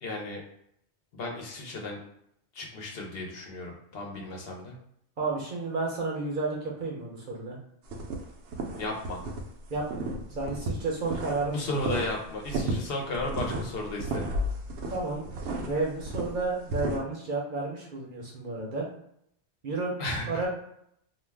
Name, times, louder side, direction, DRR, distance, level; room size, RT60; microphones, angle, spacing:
voice 1, 0.0-0.4 1.1-2.0 2.5-4.8 8.8-9.2 11.4-14.3 20.0-20.5, left 2 dB, 65° left, 0 dB, 0.8 m, -34 dB
voice 2, 5.2-7.6 9.7-11.7 14.9-15.3 15.6-18.9 19.6-19.9 20.3-20.5, right 3 dB, 55° right, -2 dB, 0.8 m, -31 dB
sound 1, 7.9-9.4 9.7-11.5 11.8-17.0, right 1 dB, 80° right, 0.9 m, -33 dB
2.4 x 2.2 x 3.3 m, 0.71 s
omnidirectional pair, 1.1 m